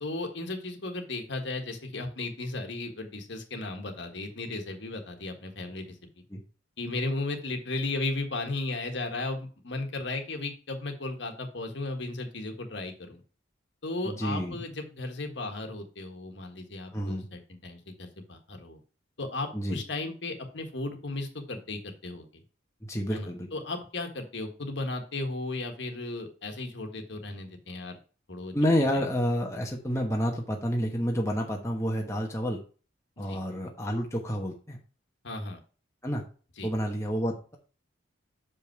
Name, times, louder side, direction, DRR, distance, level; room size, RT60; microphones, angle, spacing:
voice 1, 0.0-6.0 6.8-13.2 13.8-18.8 19.2-22.4 23.1-28.0 28.3-28.6 28.9-29.0 33.2-33.4 35.2-35.6 36.6-36.7, left 2 dB, 60° left, 5 dB, 1.6 m, -35 dB
voice 2, 14.0-14.6 16.9-17.3 19.5-19.8 22.8-23.5 28.5-32.6 33.2-34.8 36.0-36.2 36.6-37.6, equal, 15° left, 0 dB, 1.1 m, -29 dB
6.8 x 5.4 x 4.6 m, 0.37 s
head